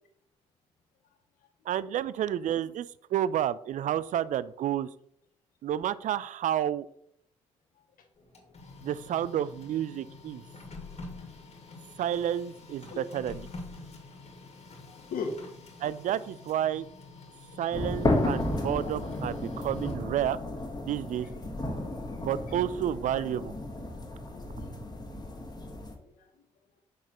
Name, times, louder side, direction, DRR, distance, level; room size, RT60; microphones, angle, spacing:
voice 1, 1.7-4.9 5.6-6.9 8.8-10.4 12.0-13.5 15.8-16.9 17.6-20.4 20.8-21.3 22.2-23.5, right 11 dB, 50° right, 18 dB, 0.4 m, -30 dB
Printer, 8.2-20.2, left 3 dB, 45° left, 2.0 m, -47 dB
voice 2, 14.8-15.4 15.7-15.8 18.8-19.0 19.8-19.9 22.5-22.6 24.3-24.7 26.0-26.4, left 4 dB, 60° left, 5 dB, 1.0 m, -40 dB
sound 1, 17.7-25.9, left 1 dB, 25° left, 1.6 m, -33 dB
6.3 x 5.9 x 3.0 m, 0.70 s
hypercardioid pair, 40°, 16 cm